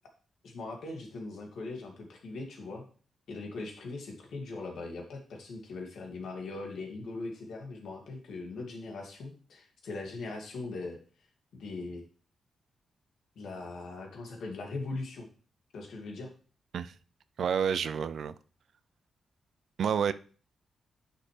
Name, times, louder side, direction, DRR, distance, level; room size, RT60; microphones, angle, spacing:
voice 1, 0.4-2.8 3.3-11.0 11.5-12.0 13.4-15.3 15.7-16.3, left 3 dB, 75° left, 2.2 m, -40 dB
voice 2, 17.4-18.3 19.8-20.1, right 7 dB, 65° right, 0.4 m, -29 dB
10.0 x 6.4 x 3.3 m
wide cardioid pair, 140°, 0 cm